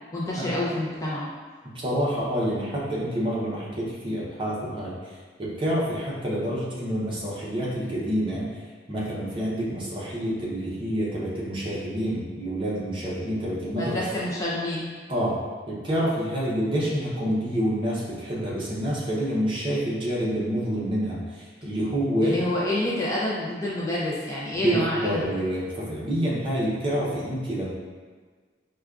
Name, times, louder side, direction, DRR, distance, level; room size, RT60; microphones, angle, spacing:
voice 1, 0.1-1.3 13.8-14.9 22.2-25.2, left 1 dB, 20° left, -7 dB, 0.4 m, -28 dB
voice 2, 1.6-8.5 8.9-14.0 15.1-15.4 15.7-22.4 24.6-27.7, equal, 30° right, -6 dB, 0.7 m, -28 dB
4.8 x 2.2 x 2.3 m, 1.5 s
head